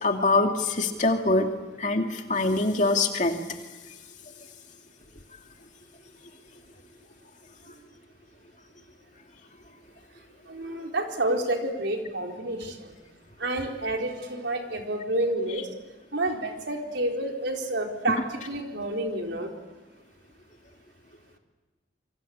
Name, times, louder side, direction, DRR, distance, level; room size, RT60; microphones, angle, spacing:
voice 1, 0.0-1.5 1.8-3.4, left 2 dB, 40° left, 3 dB, 2.6 m, -24 dB
voice 2, 10.5-12.9 13.4-15.7 16.1-18.2 18.5-19.5, right 1 dB, 75° right, 2 dB, 4.3 m, -29 dB
27.5 x 24.0 x 8.6 m, 1.2 s
head